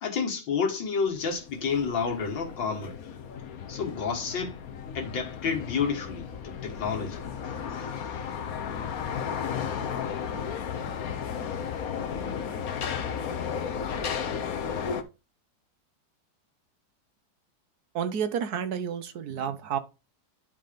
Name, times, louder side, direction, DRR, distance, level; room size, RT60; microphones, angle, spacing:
voice 1, 0.0-3.0 3.7-4.6 4.9-7.2 7.7-7.9, left 5 dB, 85° left, 2.4 m, -30 dB
sound 1, 1.1-15.0, left 7 dB, 55° left, 1.3 m, -34 dB
voice 2, 17.9-19.8, right 8 dB, 60° right, 1.4 m, -30 dB
10.5 x 3.9 x 5.1 m
omnidirectional pair, 2.0 m